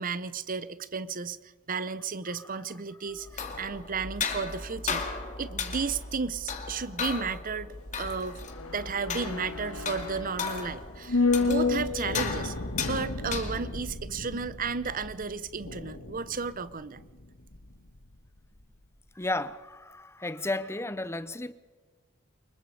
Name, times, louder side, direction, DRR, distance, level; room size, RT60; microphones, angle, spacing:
voice 1, 0.0-1.4 1.7-5.0 5.4-8.4 8.7-12.6 12.8-17.0, right 5 dB, 40° right, 0.8 m, -33 dB
voice 2, 2.3-2.6 3.1-3.2 19.2-21.5, left 2 dB, 10° left, 0.7 m, -34 dB
sound 1, 3.2-13.9, left 5 dB, 35° left, 2.3 m, -36 dB
sound 2, 7.7-18.2 18.4-18.5, left 3 dB, 85° left, 1.8 m, -32 dB
25.0 x 21.5 x 4.9 m
head